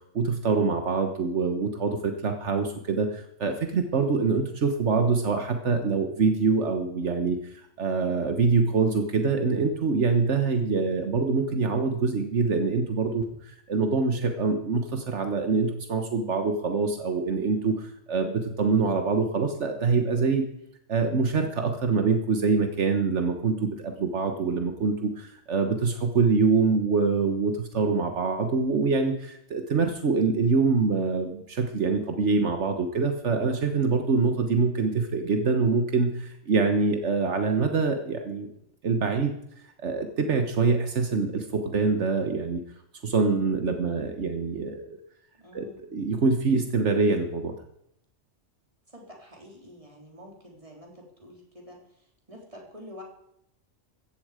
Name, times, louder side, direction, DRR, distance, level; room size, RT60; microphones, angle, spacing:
voice 1, 0.1-20.4 20.9-38.5 38.8-39.3 39.8-42.6 43.0-45.0 45.5-47.5, right 4 dB, 75° right, 5 dB, 1.6 m, -25 dB
voice 2, 45.3-45.8 48.9-53.0, left 1 dB, 30° right, 0 dB, 3.8 m, -48 dB
16.5 x 14.0 x 5.0 m, 0.75 s
omnidirectional pair, 1.2 m